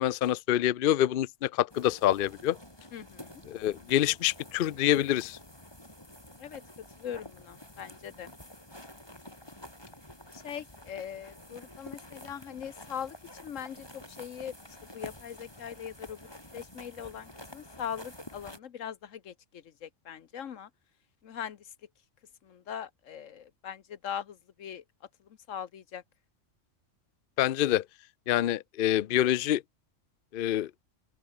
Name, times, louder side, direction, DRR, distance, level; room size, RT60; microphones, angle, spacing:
voice 1, 0.0-2.6 3.5-5.4 27.4-27.8 28.3-29.6 30.3-30.7, left 12 dB, 55° left, 0.6 m, -26 dB
sound 1, 1.7-18.6, left 1 dB, 20° left, 4.9 m, -49 dB
voice 2, 2.9-3.4 6.4-8.3 10.3-14.5 14.9-16.2 16.5-20.7 21.2-21.7 22.4-24.8 25.5-26.0, left 8 dB, 85° left, 1.4 m, -41 dB
open air
omnidirectional pair, 1.3 m